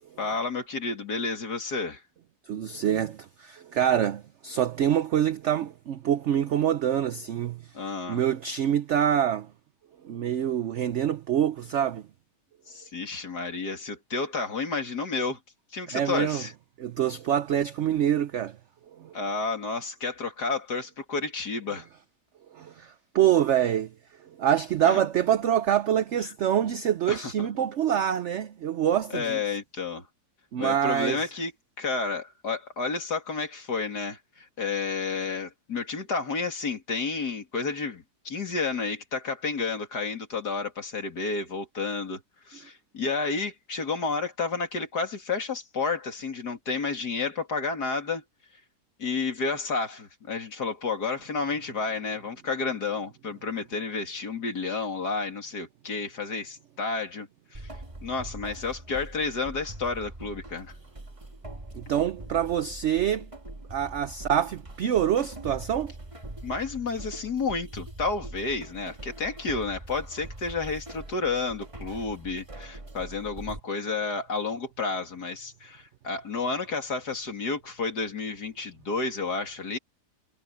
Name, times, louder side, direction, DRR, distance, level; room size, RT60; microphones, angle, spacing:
voice 1, 0.2-2.0 7.7-8.2 12.7-15.4 15.7-16.5 19.1-21.9 24.8-25.0 27.1-27.5 29.1-30.1 30.6-31.5 31.8-42.2 42.5-48.2 49.0-57.3 57.5-57.7 58.0-60.7 66.4-79.8, left 4 dB, 70° left, 3.5 m, -31 dB
voice 2, 2.5-9.5 10.0-12.0 15.9-16.5 16.8-18.6 19.0-19.2 22.5-23.9 24.4-29.4 30.5-31.3 61.7-63.3 63.7-65.9 71.9-72.1, right 10 dB, 60° right, 0.8 m, -26 dB
sound 1, 57.5-73.6, right 1 dB, 20° right, 1.7 m, -43 dB
omnidirectional pair, 1.8 m